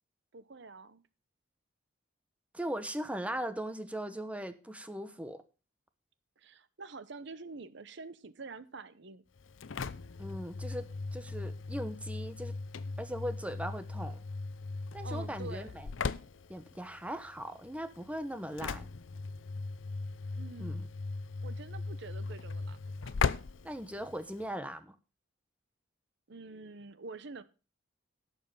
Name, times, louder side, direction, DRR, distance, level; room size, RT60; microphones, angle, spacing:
voice 1, 0.3-1.0 6.4-9.2 15.0-15.7 20.3-20.9 21.4-23.2 26.3-27.4, right 3 dB, 65° right, 0.9 m, -47 dB
voice 2, 2.5-5.4 10.2-12.6 13.0-14.2 14.9-15.9 16.5-18.9 20.6-20.9 23.6-24.9, equal, 5° right, 0.9 m, -39 dB
Engine / Slam, 9.4-24.5, left 4 dB, 80° left, 0.6 m, -38 dB
11.5 x 7.3 x 5.5 m
head